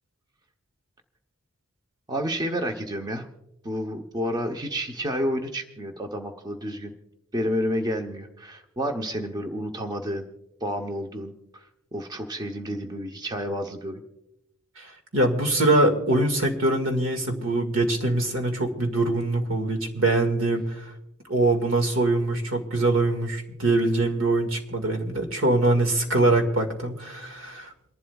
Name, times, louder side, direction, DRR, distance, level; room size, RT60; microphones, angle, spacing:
voice 1, 2.1-3.3 3.6-6.9 7.3-10.3 10.6-11.7 11.9-14.0, equal, 20° right, 4 dB, 0.8 m, -30 dB
voice 2, 14.8-20.8 21.3-27.7, right 2 dB, 75° right, 5 dB, 1.9 m, -23 dB
28.5 x 11.5 x 2.3 m, 0.89 s
head